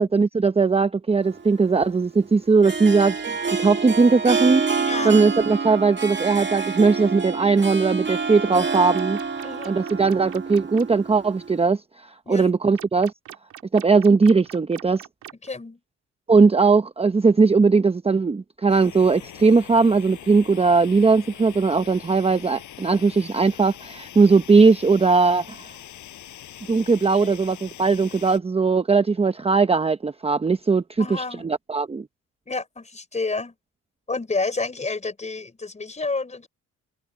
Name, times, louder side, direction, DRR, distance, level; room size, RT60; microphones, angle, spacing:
voice 1, 0.0-4.8 5.0-9.2 9.7-13.1 13.7-15.0 16.3-25.7 26.7-32.1, right 4 dB, 20° right, 0.8 m, -19 dB
Harp, 1.2-11.7, right 5 dB, 40° right, 2.2 m, -28 dB
voice 2, 4.8-5.3 9.4-9.8 12.2-12.5 15.4-15.8 27.2-27.6 31.0-31.5 32.5-33.5 34.1-36.5, left 3 dB, 25° left, 4.4 m, -30 dB
sound 1, 8.5-10.8 12.7-15.5, right 11 dB, 75° right, 2.5 m, -42 dB
sound 2, 18.7-28.4, left 12 dB, 75° left, 6.6 m, -43 dB
cardioid pair, 90°, 30 cm